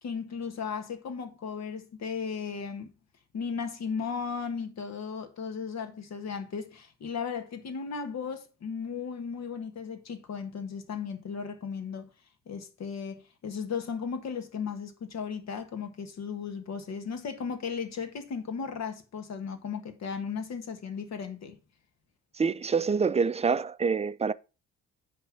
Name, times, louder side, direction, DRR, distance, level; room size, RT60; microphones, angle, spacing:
voice 1, 0.0-2.9 3.3-12.1 12.5-21.6, left 6 dB, 60° left, 1.6 m, -36 dB
voice 2, 22.4-24.3, right 5 dB, 20° right, 0.4 m, -26 dB
9.7 x 3.5 x 5.8 m
cardioid pair, 90°, 30 cm